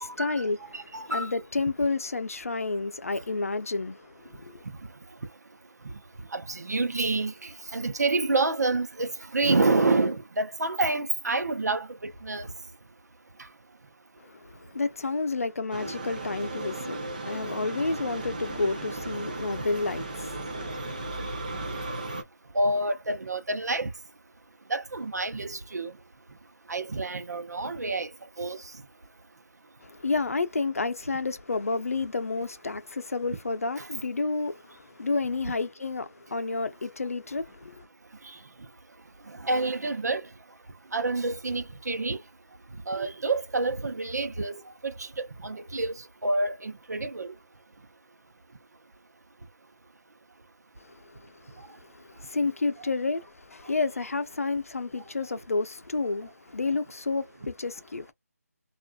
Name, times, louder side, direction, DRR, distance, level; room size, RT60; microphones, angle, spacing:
voice 1, 0.0-4.6 14.2-20.7 29.8-37.9 50.8-58.1, left 3 dB, 60° left, 0.6 m, -30 dB
voice 2, 0.7-1.3 5.8-5.9 6.3-12.5 22.5-23.9 24.7-25.9 26.7-28.1 28.4-28.6 33.8-33.9 35.4-35.5 39.4-40.2 40.9-42.2 42.9-45.9 46.2-47.3, right 2 dB, 85° right, 0.8 m, -28 dB
sound 1, 15.7-22.2, right 2 dB, 30° right, 0.6 m, -35 dB
3.4 x 2.5 x 2.2 m
figure-of-eight pair, 180°, 9 cm